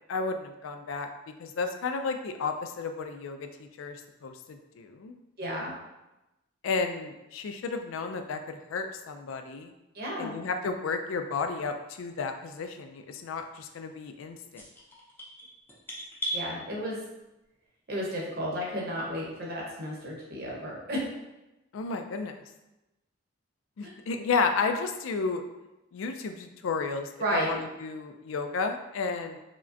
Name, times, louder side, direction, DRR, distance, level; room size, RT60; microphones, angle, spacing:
voice 1, 0.1-1.1 1.4-5.2 6.6-9.7 10.2-14.6 21.7-22.4 23.8-25.4 25.9-29.4, left 4 dB, 80° left, 6 dB, 0.4 m, -32 dB
voice 2, 5.4-5.7 9.9-10.3 16.3-17.0 17.9-21.0 23.8-23.9 27.2-27.6, equal, 50° right, -3 dB, 0.9 m, -32 dB
sound 1, 14.5-16.4, right 1 dB, 10° left, 0.6 m, -36 dB
4.8 x 2.1 x 2.6 m, 0.97 s
head